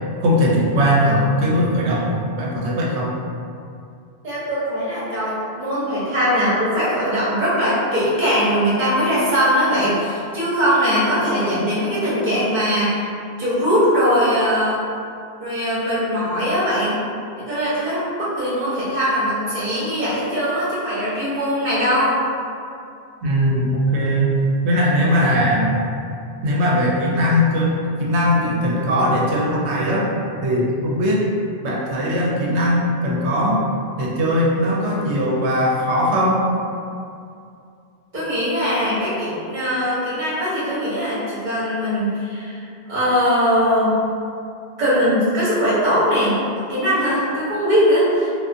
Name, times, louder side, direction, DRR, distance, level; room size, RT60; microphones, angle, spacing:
voice 1, 0.2-3.1 23.2-24.3 24.6-25.7 26.4-30.1 30.4-31.2 31.6-33.6 34.0-36.4, equal, 90° right, -4 dB, 0.9 m, -19 dB
voice 2, 4.2-13.1 13.4-14.8 15.4-17.0 17.4-22.2 38.1-42.6 42.9-44.0 44.8-46.4 46.7-48.3, equal, 45° right, -10 dB, 1.0 m, -20 dB
2.4 x 2.3 x 2.5 m, 2.5 s
omnidirectional pair, 1.1 m